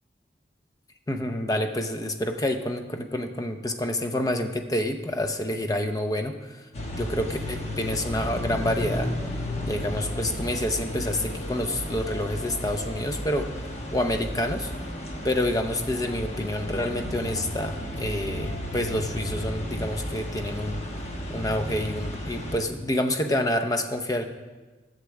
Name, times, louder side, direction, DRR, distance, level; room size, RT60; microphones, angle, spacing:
voice 1, 1.1-6.6 6.9-9.1 9.7-13.5 13.9-14.7 15.2-20.8 21.3-24.2, left 1 dB, 20° left, 6 dB, 0.6 m, -28 dB
sound 1, 6.7-22.6, equal, 35° left, 1.2 m, -33 dB
8.2 x 8.0 x 7.0 m, 1.3 s
head